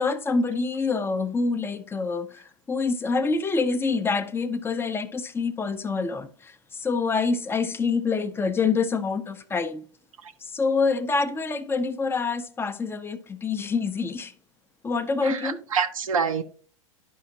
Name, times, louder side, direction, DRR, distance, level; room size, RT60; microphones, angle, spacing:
voice 1, 0.0-6.5 6.8-9.8 10.4-14.3 14.8-15.6, left 4 dB, 15° left, 0.6 m, -26 dB
voice 2, 15.2-16.4, right 6 dB, 85° right, 0.6 m, -26 dB
11.0 x 4.9 x 2.7 m
hypercardioid pair, 100°, 17 cm